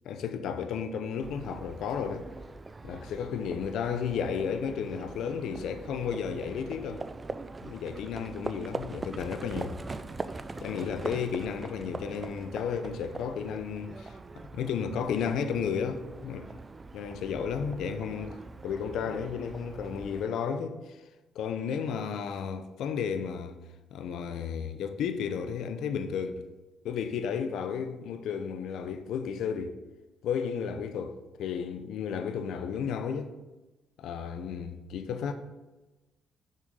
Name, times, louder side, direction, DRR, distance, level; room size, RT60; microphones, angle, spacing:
voice 1, 0.0-2.3 2.8-7.0 7.6-9.8 10.6-14.2 14.5-16.6 16.9-18.4 18.6-21.0 21.3-23.6 23.9-26.5 26.8-29.8 30.2-33.3 34.0-35.3, left 7 dB, 80° left, 0.7 m, -33 dB
Livestock farm animals working animals, 1.2-20.2, right 3 dB, 25° right, 0.5 m, -42 dB
6.6 x 6.4 x 5.3 m
cardioid pair, 90°, 0 cm